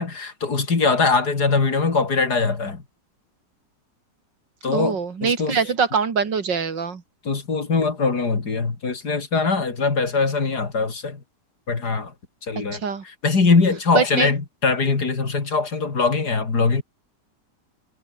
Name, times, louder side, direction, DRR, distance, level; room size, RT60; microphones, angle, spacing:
voice 1, 0.0-2.8 4.6-5.6 7.3-11.2 11.7-12.1 12.5-16.8, left 4 dB, 60° left, 3.6 m, -22 dB
voice 2, 4.7-7.0 12.7-13.0 13.9-14.3, right 5 dB, 75° right, 3.1 m, -23 dB
omnidirectional pair, 1.9 m